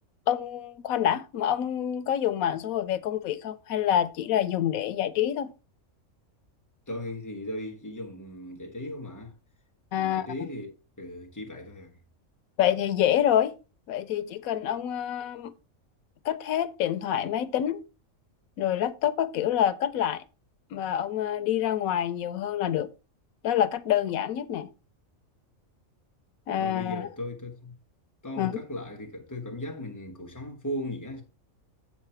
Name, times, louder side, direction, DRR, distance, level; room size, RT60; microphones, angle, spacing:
voice 1, 0.3-5.5 9.9-10.3 12.6-13.5 13.9-15.5 16.2-17.8 18.6-20.2 20.7-22.9 23.4-24.7 26.5-27.1 28.4-28.6, left 10 dB, 90° left, 1.1 m, -27 dB
voice 2, 6.9-9.3 10.0-12.0 26.6-27.7 28.2-31.2, left 1 dB, 15° left, 1.3 m, -37 dB
7.4 x 5.7 x 4.3 m
omnidirectional pair, 1.4 m